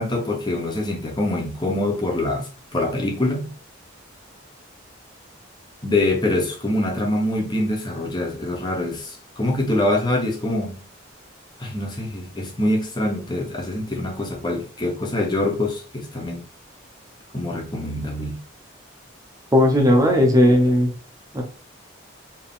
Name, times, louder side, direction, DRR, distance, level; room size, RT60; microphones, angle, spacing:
voice 1, 0.0-3.5 5.8-10.8 11.6-16.4 17.3-18.4, left 1 dB, 20° left, 1.1 m, -24 dB
voice 2, 19.5-20.9 21.3-21.4, left 1 dB, 15° right, 0.9 m, -16 dB
4.6 x 3.0 x 3.5 m
head